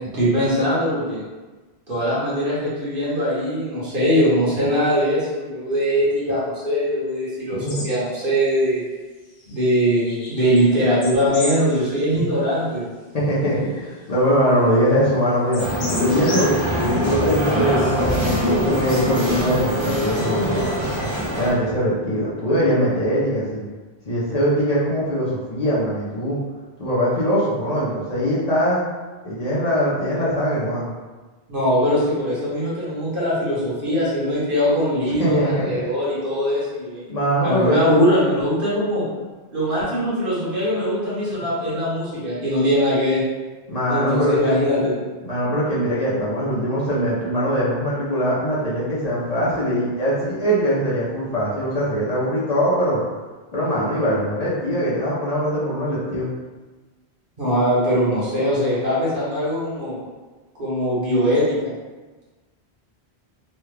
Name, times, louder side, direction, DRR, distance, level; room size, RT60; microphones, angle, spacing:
voice 1, 0.1-1.2 1.9-8.8 9.5-12.8 31.5-37.1 37.4-39.0 39.5-43.2 43.9-44.9 57.4-60.0 60.6-61.7, equal, 55° right, -8 dB, 1.3 m, -21 dB
voice 2, 7.5-7.8 13.1-15.7 16.0-20.9 21.3-23.7 24.1-26.4 26.8-28.9 29.2-30.9 35.2-35.9 37.1-37.8 43.7-44.5 45.2-53.0 53.5-56.3, equal, 45° left, -8 dB, 0.7 m, -22 dB
sound 1, 7.7-7.9 8.2-8.3 9.3-10.6 11.0-12.2 12.7-12.8 13.4-13.6 13.9-14.0 15.5-17.3, left 1 dB, 75° left, 0.9 m, -34 dB
sound 2, 15.6-21.5, left 1 dB, 35° right, 0.6 m, -22 dB
3.1 x 2.3 x 3.2 m, 1.3 s
omnidirectional pair, 1.1 m